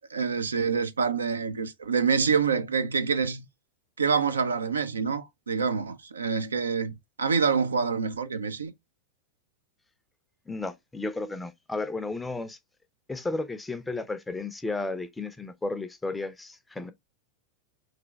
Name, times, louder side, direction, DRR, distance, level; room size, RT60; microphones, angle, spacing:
voice 1, 0.1-3.5 4.0-8.7, right 5 dB, 75° right, 0.5 m, -26 dB
voice 2, 10.5-12.6 13.1-16.9, left 3 dB, 10° left, 0.6 m, -33 dB
3.7 x 3.3 x 3.4 m
figure-of-eight pair, 90°, 0 cm